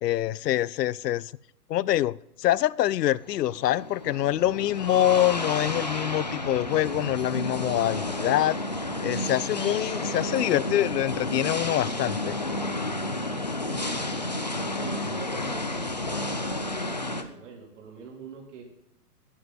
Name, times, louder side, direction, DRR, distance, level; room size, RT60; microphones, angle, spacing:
voice 1, 0.0-1.3 1.7-8.6 9.0-12.3, left 13 dB, 80° left, 22 dB, 0.6 m, -25 dB
sound 1, 3.2-17.2, left 2 dB, 30° left, 0.4 m, -31 dB
voice 2, 10.0-10.6 13.6-14.4 14.8-18.6, right 6 dB, 50° right, 0 dB, 3.8 m, -46 dB
11.5 x 9.7 x 4.2 m, 0.80 s
hypercardioid pair, 165°, 48 cm